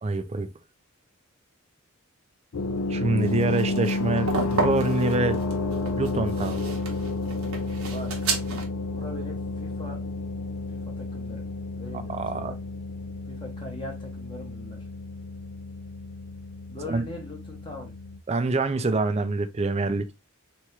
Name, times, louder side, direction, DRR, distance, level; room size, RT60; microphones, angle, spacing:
voice 1, 0.0-0.5 2.9-5.4 6.0-6.6 12.1-12.6 16.9-17.0 18.3-20.1, right 3 dB, 30° right, 0.4 m, -26 dB
sound 1, 2.5-18.2, left 3 dB, 75° left, 0.5 m, -31 dB
sound 2, 3.2-8.6, right 4 dB, 70° right, 1.1 m, -31 dB
voice 2, 7.9-8.3 8.9-10.0 10.7-11.5 11.7-12.6 13.3-14.9 16.7-17.9, left 1 dB, 20° left, 0.9 m, -41 dB
3.5 x 3.0 x 3.1 m
head